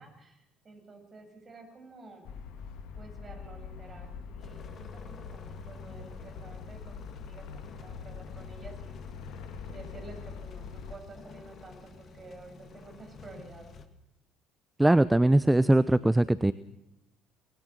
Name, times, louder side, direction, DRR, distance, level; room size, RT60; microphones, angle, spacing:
voice 1, 0.0-2.3 2.9-9.0 9.7-13.8, right 3 dB, 30° right, 4 dB, 7.9 m, -50 dB
sound 1, 2.2-11.0, left 6 dB, 60° left, 2.1 m, -43 dB
sound 2, 4.4-13.9, left 5 dB, 40° left, 2.2 m, -50 dB
voice 2, 14.8-16.5, right 1 dB, 10° right, 16 dB, 0.7 m, -21 dB
25.5 x 20.5 x 6.3 m, 0.90 s
figure-of-eight pair, 55°, 0 cm